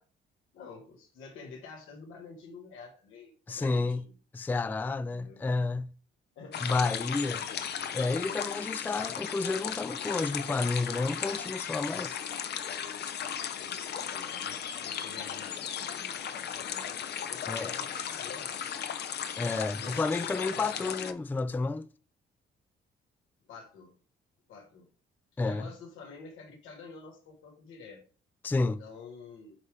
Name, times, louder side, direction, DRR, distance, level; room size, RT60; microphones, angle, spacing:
voice 1, 0.5-4.1 5.0-5.4 6.3-6.6 14.0-17.0 17.3-18.7 19.7-21.0 23.5-24.0 24.5-24.9 25.4-28.0 28.6-29.5, left 4 dB, 90° left, 1.6 m, -48 dB
voice 2, 3.5-4.0 4.3-5.9 6.6-7.4 7.9-12.2 17.5-17.7 19.4-21.8 25.4-25.7 28.4-28.8, left 3 dB, 10° left, 0.3 m, -30 dB
sound 1, 6.5-21.1, left 8 dB, 55° left, 0.6 m, -36 dB
8.2 x 3.6 x 3.3 m
cardioid pair, 90°, 20 cm